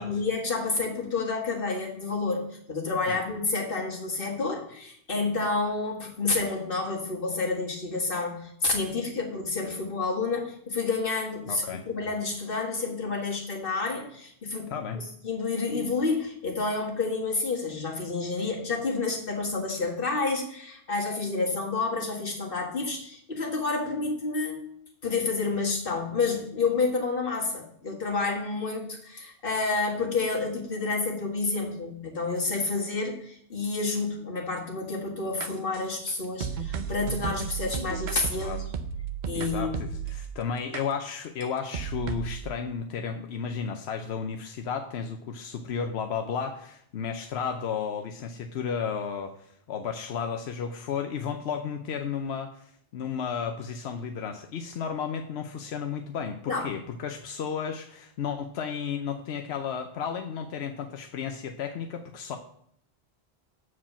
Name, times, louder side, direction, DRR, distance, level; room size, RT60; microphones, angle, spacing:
voice 1, 0.0-24.7 25.0-38.6 39.3-39.8 56.5-56.7, left 3 dB, 60° left, -1 dB, 2.0 m, -29 dB
voice 2, 11.5-11.9 14.7-15.0 38.4-38.6 39.3-62.4, left 6 dB, 90° left, 5 dB, 0.9 m, -33 dB
sound 1, 35.4-40.3 40.7-40.8 41.4-41.5 41.7-42.4, right 7 dB, 50° right, 0.7 m, -33 dB
7.4 x 4.8 x 7.1 m, 0.68 s
omnidirectional pair, 1.1 m